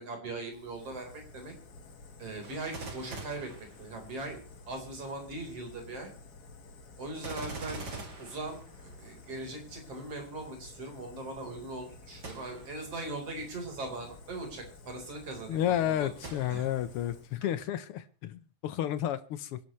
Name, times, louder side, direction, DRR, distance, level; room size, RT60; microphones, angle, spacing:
voice 1, 0.0-1.5 2.2-6.1 7.0-7.9 8.2-16.1 16.5-16.7, right 2 dB, 50° right, 2 dB, 5.1 m, -40 dB
Fire, 0.5-17.5, left 3 dB, 45° left, 1.4 m, -52 dB
Gunshot gunfire, 2.4-4.4 7.2-9.2 12.2-12.8 13.4-13.5 16.2-16.9 17.5-17.6, right 3 dB, 35° right, 2.7 m, -44 dB
voice 2, 15.5-19.6, left 11 dB, 75° left, 13 dB, 1.3 m, -31 dB
25.5 x 11.5 x 3.2 m, 0.33 s
omnidirectional pair, 3.5 m